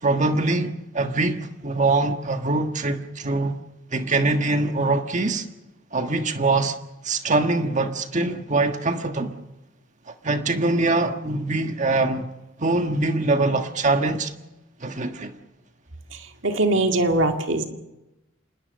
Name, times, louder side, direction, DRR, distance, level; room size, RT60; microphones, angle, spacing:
voice 1, 0.0-3.6 3.9-5.4 5.9-6.8 7.0-9.3 10.1-12.3 12.6-14.3 14.8-15.4, right 2 dB, 40° right, 1.6 m, -23 dB
voice 2, 16.1-17.6, right 2 dB, 70° right, 2.0 m, -22 dB
27.0 x 20.0 x 6.5 m
head